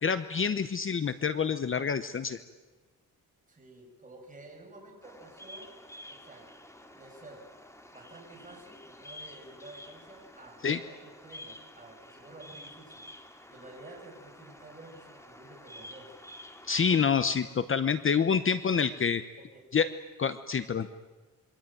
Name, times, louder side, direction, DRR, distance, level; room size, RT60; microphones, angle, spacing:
voice 1, 0.0-2.4 10.6-10.8 16.7-19.2 19.7-19.9 20.2-20.9, left 6 dB, 35° left, 11 dB, 0.9 m, -27 dB
voice 2, 3.5-5.8 6.1-6.5 6.9-7.4 7.9-16.1 19.5-19.7, right 2 dB, 20° right, 1 dB, 7.7 m, -51 dB
Bird vocalization bird call bird song, 5.0-17.2, left 1 dB, 10° left, 2.6 m, -50 dB
26.5 x 24.0 x 9.2 m, 1.3 s
wide cardioid pair, 140°, 36 cm